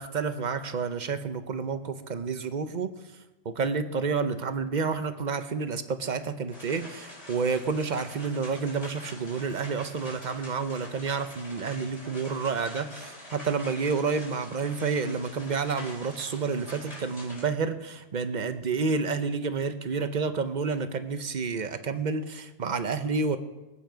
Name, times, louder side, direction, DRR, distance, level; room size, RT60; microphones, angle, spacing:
voice 1, 0.0-2.9 3.4-23.4, right 5 dB, 45° right, 10 dB, 0.9 m, -29 dB
sound 1, 6.5-17.4, left 1 dB, 85° left, 3.9 m, -45 dB
20.5 x 8.5 x 5.1 m, 1.1 s
omnidirectional pair, 1.2 m